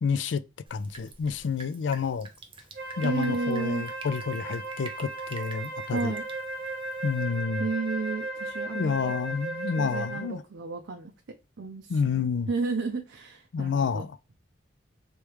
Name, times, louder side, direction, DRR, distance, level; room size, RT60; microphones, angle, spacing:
voice 1, 0.0-0.4 0.7-2.3 3.0-6.1 7.0-7.7 8.7-10.4 11.9-12.5 13.5-14.1, left 6 dB, 80° left, 0.4 m, -29 dB
Drip, 0.7-7.2, right 4 dB, 30° right, 0.6 m, -48 dB
Wind instrument woodwind instrument, 2.7-10.4, right 2 dB, 55° right, 1.1 m, -36 dB
voice 2, 3.0-3.9 5.9-6.2 7.6-9.2 9.8-11.1 11.6-12.2 12.5-14.0, right 4 dB, 90° right, 0.5 m, -32 dB
3.4 x 3.2 x 3.1 m
head